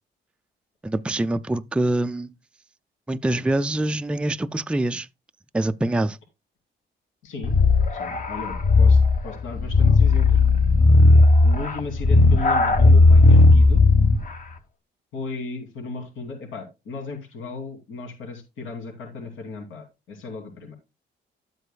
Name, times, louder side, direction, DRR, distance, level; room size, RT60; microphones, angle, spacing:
voice 1, 0.8-2.3 3.1-5.1 5.5-6.2, right 1 dB, 5° right, 0.4 m, -24 dB
voice 2, 7.2-7.6 7.9-10.4 11.4-13.8 15.1-20.7, left 4 dB, 80° left, 2.8 m, -35 dB
sound 1, 7.4-14.3, left 3 dB, 45° left, 1.3 m, -16 dB
12.0 x 8.0 x 2.3 m
cardioid pair, 90°, 20 cm